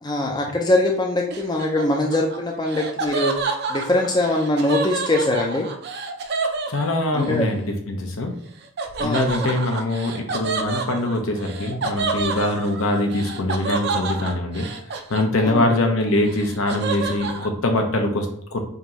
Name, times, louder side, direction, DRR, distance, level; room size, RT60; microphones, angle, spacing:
voice 1, 0.0-5.7 7.1-7.5 9.0-9.3 15.4-15.7, left 1 dB, 20° left, 0 dB, 0.4 m, -22 dB
Laughter, 1.3-7.3 8.8-15.7 16.1-17.5, right 4 dB, 45° right, 0.4 m, -29 dB
voice 2, 6.7-8.3 9.0-14.7 14.9-18.6, left 1 dB, 70° left, 4 dB, 0.7 m, -23 dB
5.1 x 2.6 x 3.0 m, 0.66 s
head